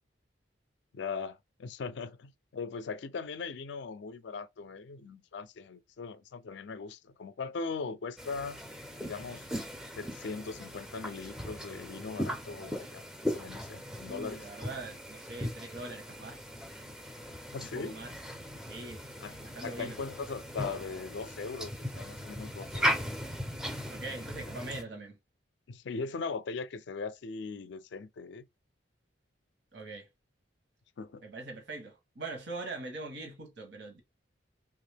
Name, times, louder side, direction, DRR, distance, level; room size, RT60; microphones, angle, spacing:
voice 1, 0.9-8.6 9.0-9.5 10.0-14.5 17.5-18.0 19.2-19.3 19.6-23.0 25.7-28.5 31.0-31.2, left 4 dB, 65° left, 0.4 m, -39 dB
sound 1, 8.2-24.8, equal, 5° right, 0.4 m, -38 dB
voice 2, 14.0-16.4 17.6-18.1 18.7-19.0 19.4-20.0 23.9-25.2 29.7-30.1 31.2-34.0, right 2 dB, 60° right, 1.0 m, -42 dB
2.9 x 2.4 x 3.3 m
head